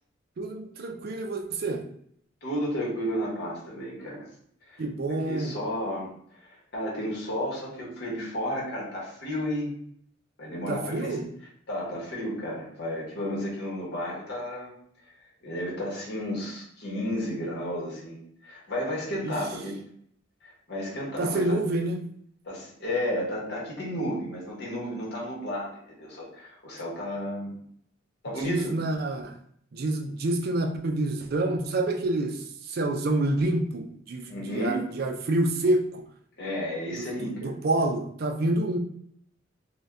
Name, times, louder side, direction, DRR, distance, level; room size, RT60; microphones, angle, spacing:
voice 1, 0.4-1.8 4.8-5.6 10.7-11.2 19.2-19.3 21.2-22.0 28.4-29.3 29.7-36.0 37.0-38.8, right 2 dB, 50° right, 5 dB, 0.4 m, -28 dB
voice 2, 2.4-4.3 4.7-4.8 5.2-9.7 10.4-11.2 11.7-14.7 15.0-15.1 15.4-19.8 20.4-21.6 22.4-27.6 28.2-28.7 34.3-34.8 36.4-37.5, equal, 55° left, -4 dB, 1.1 m, -32 dB
2.6 x 2.2 x 3.4 m, 0.66 s
head